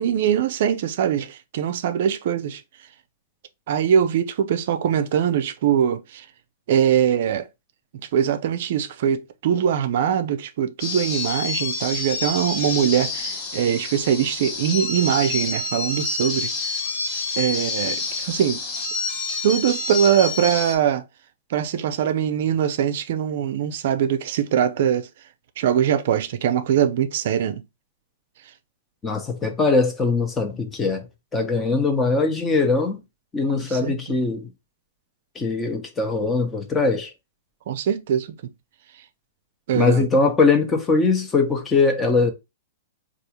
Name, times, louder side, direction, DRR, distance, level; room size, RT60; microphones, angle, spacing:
voice 1, 0.0-2.6 3.7-6.2 6.7-7.5 7.9-16.5 17.4-18.6 19.4-21.0 21.5-25.1 25.6-27.6 33.6-33.9 37.7-38.3 39.7-40.1, right 9 dB, 60° right, 0.4 m, -22 dB
sound 1, 10.8-20.8, left 4 dB, 35° left, 1.1 m, -28 dB
voice 2, 29.0-31.1 31.3-33.0 33.3-34.5 35.3-37.1 39.7-42.3, left 3 dB, 15° left, 0.8 m, -21 dB
3.4 x 2.4 x 2.9 m
hypercardioid pair, 125°, 0 cm